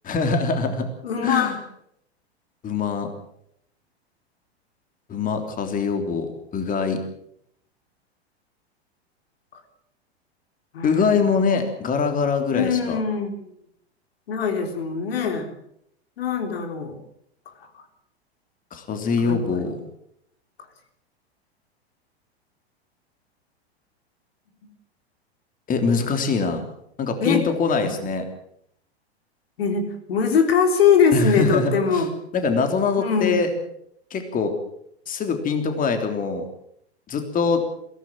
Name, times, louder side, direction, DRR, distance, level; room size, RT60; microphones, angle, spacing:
voice 1, 0.0-0.9 1.2-1.6 2.6-3.1 5.1-7.0 10.8-13.0 18.7-19.8 25.7-26.6 27.0-28.2 31.1-32.0 32.3-33.5 34.1-34.5 35.1-36.4 37.1-37.6, left 4 dB, 25° left, 6 dB, 3.3 m, -23 dB
voice 2, 1.0-1.5 9.5-9.6 10.7-11.0 12.5-13.3 14.3-15.5 16.2-17.0 19.2-19.7 27.2-27.4 29.6-32.1 33.0-33.6, left 6 dB, 65° left, 6 dB, 3.7 m, -22 dB
22.0 x 17.0 x 7.5 m, 0.72 s
figure-of-eight pair, 95°, 33 cm